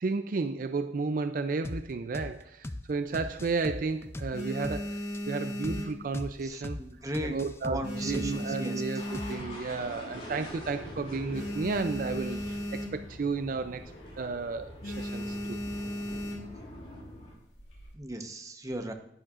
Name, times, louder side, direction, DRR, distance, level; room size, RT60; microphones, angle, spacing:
voice 1, 0.0-6.8 7.2-13.8 14.2-15.6, right 4 dB, 50° right, 10 dB, 0.4 m, -33 dB
sound 1, 1.6-1.8 2.1-2.3 2.6-2.8 3.1-4.8 5.1-5.2 5.6-5.8 6.1-6.3 6.6-6.8 7.1-8.7 9.1-9.6, left 1 dB, 15° left, 0.4 m, -38 dB
sound 2, 3.0-3.7 4.1-6.6 6.9-7.3 7.6-9.8 10.3-10.4 10.6-10.7 11.0-13.2 13.5-13.8 14.1-14.4 14.8-16.6 17.4-17.9, equal, 75° left, 2.8 m, -36 dB
voice 2, 6.4-7.4 7.6-8.8 17.9-18.9, right 1 dB, 20° right, 5 dB, 0.9 m, -37 dB
sound 3, 9.0-17.3, left 1 dB, 35° left, 4.3 m, -44 dB
10.5 x 10.5 x 2.5 m, 0.77 s
head